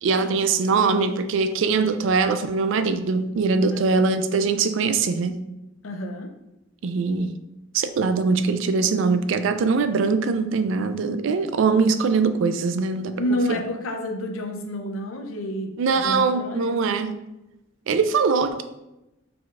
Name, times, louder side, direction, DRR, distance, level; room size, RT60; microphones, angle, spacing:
voice 1, 0.0-5.4 6.8-7.4 7.7-13.2 13.5-13.6 15.8-17.2 17.9-18.6, right 4 dB, 65° right, 10 dB, 0.3 m, -22 dB
voice 2, 5.8-6.3 13.1-16.8, equal, 80° left, 3 dB, 0.6 m, -29 dB
4.8 x 3.9 x 2.4 m, 0.94 s
head